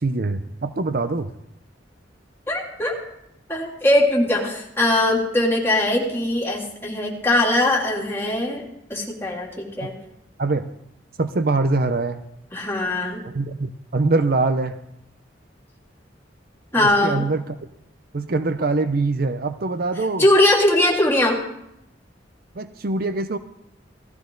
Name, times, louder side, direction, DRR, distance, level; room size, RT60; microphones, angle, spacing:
voice 1, 0.0-1.3 9.8-9.9 10.4-10.7 11.2-12.2 13.3-14.8 16.7-17.6 18.1-20.3 22.6-23.4, right 3 dB, 50° right, 10 dB, 0.6 m, -23 dB
voice 2, 2.5-2.9 3.5-9.9 12.5-13.2 16.7-17.2 20.2-21.4, left 1 dB, 15° left, -3 dB, 3.0 m, -20 dB
17.5 x 14.5 x 3.9 m, 0.81 s
head